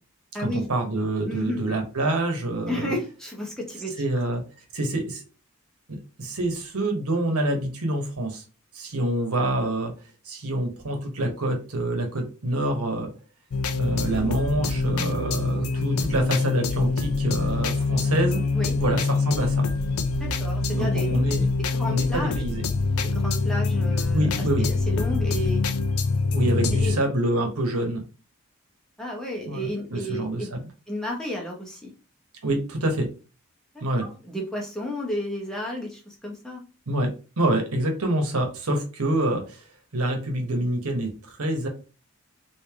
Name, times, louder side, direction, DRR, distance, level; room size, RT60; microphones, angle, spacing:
voice 1, 0.4-2.9 4.0-4.4 4.7-5.2 5.9-8.4 8.7-9.9 10.2-13.1 13.8-18.4 18.7-19.7 20.7-21.5 21.8-22.6 24.1-24.7 26.3-28.0 29.5-30.6 32.4-33.1 33.8-34.1 36.9-37.1 37.4-39.6 39.9-41.7, right 1 dB, 90° right, 4 dB, 1.1 m, -26 dB
voice 2, 1.3-1.6 2.7-3.9 18.5-18.8 20.2-21.1 21.6-22.3 23.1-25.6 26.7-26.9 29.0-30.5 30.9-31.9 33.7-36.6, left 1 dB, 5° left, -2 dB, 0.8 m, -32 dB
sound 1, 13.5-27.0, left 3 dB, 85° left, 0.5 m, -25 dB
3.3 x 2.6 x 3.4 m, 0.34 s
head